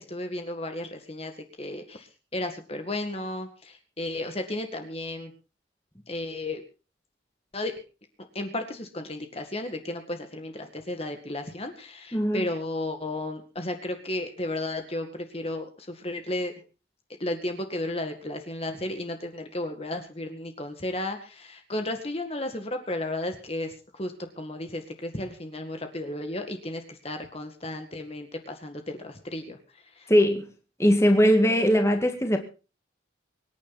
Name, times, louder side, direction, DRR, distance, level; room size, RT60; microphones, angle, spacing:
voice 1, 0.0-1.3 1.6-5.3 6.1-6.6 7.5-7.7 8.3-16.5 17.2-29.6 30.0-30.1, left 1 dB, 30° left, 1.9 m, -33 dB
voice 2, 12.1-12.5 30.1-30.5 30.8-32.4, equal, 15° left, 2.1 m, -20 dB
24.5 x 10.5 x 4.1 m
head